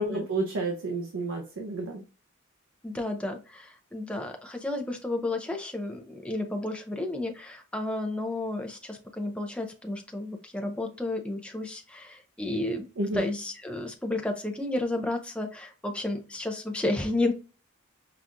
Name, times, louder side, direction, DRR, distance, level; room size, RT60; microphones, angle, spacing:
voice 1, 0.0-2.0 13.0-13.2, right 2 dB, 80° right, 2 dB, 0.6 m, -30 dB
voice 2, 2.8-12.9 13.1-17.3, left 2 dB, 5° left, 3 dB, 0.4 m, -32 dB
5.7 x 2.3 x 2.5 m, 0.33 s
head